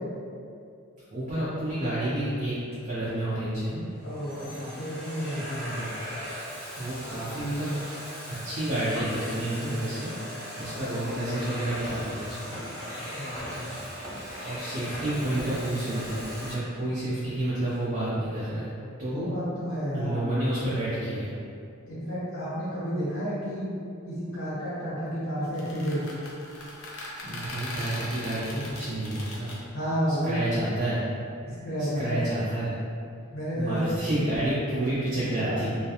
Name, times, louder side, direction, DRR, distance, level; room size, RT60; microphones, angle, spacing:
voice 1, 1.1-2.6 2.8-3.8 5.7-5.9 6.8-7.7 8.3-12.5 14.4-18.7 19.0-19.3 19.9-21.3 27.2-29.5 30.2-31.0 31.9-32.7 33.5-35.8, right 1 dB, 40° right, -10 dB, 0.5 m, -30 dB
Domestic sounds home sounds, 2.7-3.1 3.8-16.5, equal, 10° left, 1.2 m, -38 dB
voice 2, 4.0-5.8 10.7-10.8 13.2-13.7 19.1-20.2 21.9-23.7 24.0-26.0 29.7-30.4 31.5-32.2 33.3-34.2 35.4-35.6, equal, 70° left, -10 dB, 1.1 m, -31 dB
sound 1, 25.4-29.6, left 1 dB, 85° left, 0.5 m, -39 dB
2.3 x 2.2 x 2.7 m, 2.4 s
head